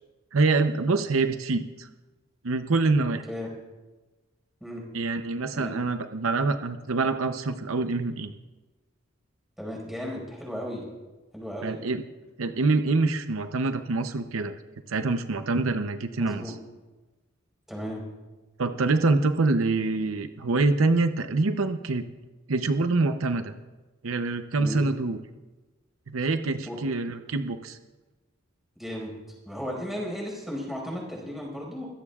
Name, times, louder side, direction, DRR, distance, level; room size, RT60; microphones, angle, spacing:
voice 1, 0.3-1.9 2.4-3.3 4.9-8.3 11.6-12.0 12.4-14.6 14.9-16.5 18.6-22.1 22.5-23.5 24.0-25.2 26.1-27.8, right 3 dB, 85° right, 8 dB, 0.7 m, -25 dB
voice 2, 9.6-10.9 11.3-11.8 16.1-16.5 17.7-18.0 24.6-24.9 26.7-26.8 28.8-29.1 29.5-31.9, equal, ahead, -2 dB, 5.1 m, -35 dB
23.0 x 17.0 x 2.4 m, 1.2 s
head